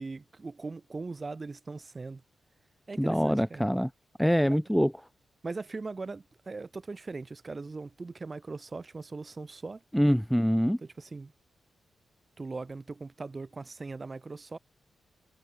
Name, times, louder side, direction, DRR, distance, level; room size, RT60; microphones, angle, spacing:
voice 1, 0.0-2.2 2.9-3.7 4.5-4.6 5.4-9.8 10.8-11.3 12.4-14.6, right 3 dB, 30° right, 4.0 m, -40 dB
voice 2, 3.0-3.9 4.2-4.9 9.9-10.8, equal, ahead, 1.6 m, -24 dB
wide cardioid pair, 115°, 0 cm